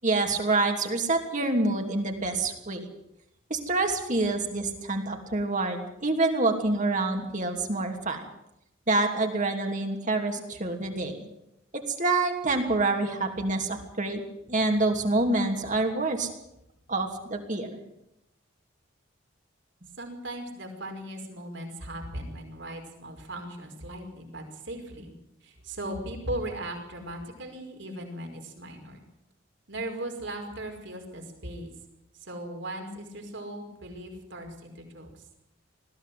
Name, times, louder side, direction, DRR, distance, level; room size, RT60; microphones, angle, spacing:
voice 1, 0.0-2.9 3.5-8.3 8.9-11.3 11.7-14.2 14.5-16.3 16.9-17.8, right 2 dB, 40° right, 3 dB, 3.0 m, -27 dB
voice 2, 20.0-25.1 25.4-29.0 29.7-31.7 32.1-35.2, right 1 dB, 60° right, 3 dB, 5.3 m, -38 dB
21.0 x 15.5 x 9.4 m, 0.84 s
head